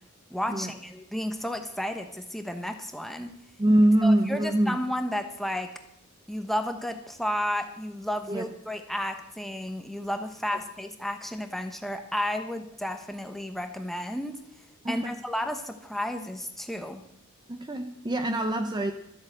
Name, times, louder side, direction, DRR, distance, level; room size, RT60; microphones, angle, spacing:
voice 1, 0.3-3.3 4.0-5.7 6.3-14.4 14.9-17.1, left 1 dB, ahead, 6 dB, 1.0 m, -32 dB
voice 2, 3.6-4.8 8.3-8.5 14.8-15.2 17.5-18.9, right 1 dB, 20° right, 7 dB, 0.6 m, -24 dB
13.5 x 8.0 x 7.9 m, 0.79 s
head